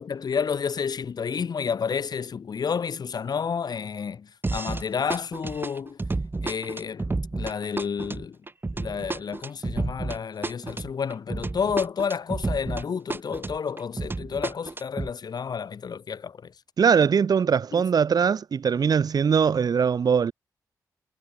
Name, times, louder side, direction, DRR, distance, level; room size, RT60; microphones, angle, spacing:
voice 1, 0.0-6.0 6.4-8.4 8.7-16.5 17.7-17.8, left 6 dB, 65° left, 2.5 m, -30 dB
sound 1, 4.4-4.8 5.1-12.8 13.1-15.1, right 3 dB, 30° right, 1.0 m, -31 dB
voice 2, 16.8-20.3, right 6 dB, 60° right, 0.7 m, -21 dB
supercardioid pair, 50°, 7 cm